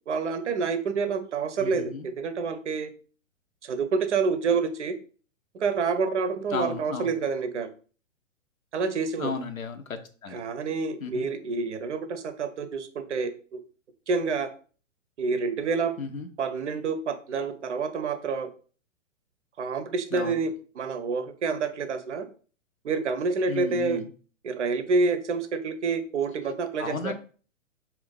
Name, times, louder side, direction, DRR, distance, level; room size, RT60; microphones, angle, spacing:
voice 1, 0.1-2.9 3.6-4.9 5.5-7.7 8.7-9.3 10.3-13.6 14.1-14.5 15.2-15.9 16.4-18.5 19.6-22.3 22.8-24.0 24.4-27.1, right 4 dB, 60° right, 9 dB, 0.6 m, -28 dB
voice 2, 1.6-2.1 6.5-7.1 9.2-9.8 10.2-10.4 11.0-11.3 16.0-16.3 20.1-20.4 23.5-24.1 26.8-27.1, left 5 dB, 85° left, 7 dB, 0.6 m, -34 dB
2.5 x 2.3 x 3.6 m, 0.41 s
figure-of-eight pair, 120°, 40 cm